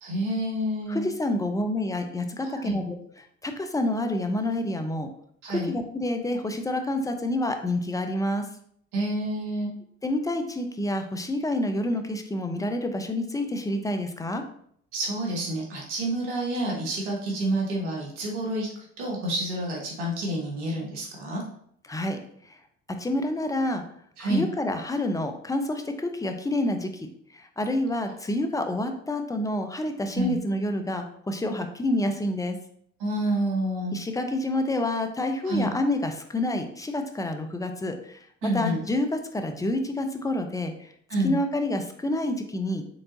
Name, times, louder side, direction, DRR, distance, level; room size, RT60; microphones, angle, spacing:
voice 1, 0.0-1.1 2.5-2.8 5.4-5.7 8.9-9.7 14.9-18.7 19.0-21.4 24.2-24.4 30.1-30.4 33.0-33.9 35.4-35.7 38.4-38.8 41.1-41.4, right 1 dB, 75° right, -2 dB, 1.3 m, -28 dB
voice 2, 0.9-5.1 5.5-8.5 10.0-14.4 21.9-22.2 22.4-22.6 22.9-23.8 24.2-32.6 33.9-38.3 38.5-40.9 41.2-43.0, left 1 dB, 10° left, 6 dB, 0.5 m, -28 dB
4.7 x 3.7 x 2.6 m, 0.66 s
hypercardioid pair, 55°, 36 cm